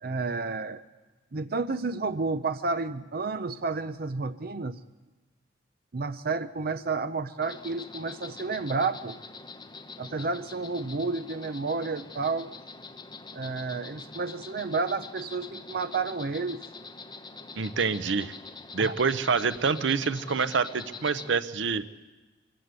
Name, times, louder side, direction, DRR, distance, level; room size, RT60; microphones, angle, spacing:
voice 1, 0.0-0.8 1.3-4.8 5.9-9.2 10.0-12.5 13.3-16.6 18.8-18.9, right 4 dB, 55° right, 11 dB, 0.6 m, -31 dB
Insect, 7.4-21.3, left 4 dB, 25° left, 1.0 m, -45 dB
voice 2, 17.6-18.3 18.7-21.8, right 5 dB, 85° right, 13 dB, 0.8 m, -26 dB
23.0 x 15.5 x 8.2 m, 1.2 s
head